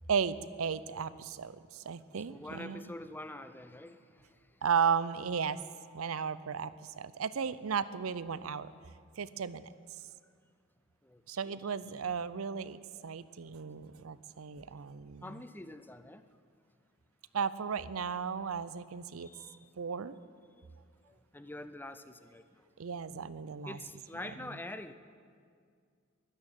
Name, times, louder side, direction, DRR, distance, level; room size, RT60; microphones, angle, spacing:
voice 1, 0.1-2.9 4.6-5.6 5.9-8.7 9.2-9.7 11.3-15.3 17.3-19.3 19.8-20.1 22.8-23.8, right 6 dB, 85° right, 16 dB, 0.6 m, -35 dB
voice 2, 2.3-4.2 11.0-11.6 12.9-13.0 15.2-16.2 19.2-19.6 20.6-20.7 21.1-22.6 23.7-24.9, left 1 dB, 10° left, 11 dB, 0.6 m, -46 dB
12.5 x 11.5 x 8.9 m, 2.1 s
head